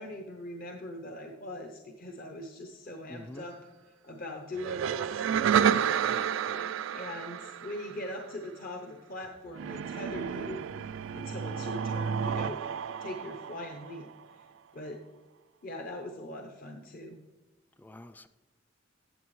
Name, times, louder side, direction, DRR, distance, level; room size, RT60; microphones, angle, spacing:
voice 1, 0.0-3.6 4.0-6.0 6.9-10.6 11.1-12.6 13.0-14.1 14.3-14.4 14.7-15.0 15.6-17.2, left 1 dB, 45° left, 0.7 m, -41 dB
voice 2, 3.1-3.5 6.0-6.8 17.8-18.3, left 1 dB, 10° left, 0.3 m, -47 dB
sound 1, 4.6-8.2 9.6-14.2, right 8 dB, 75° right, 0.3 m, -31 dB
sound 2, 9.2-11.6, equal, 85° left, 1.0 m, -55 dB
14.0 x 7.6 x 3.1 m
head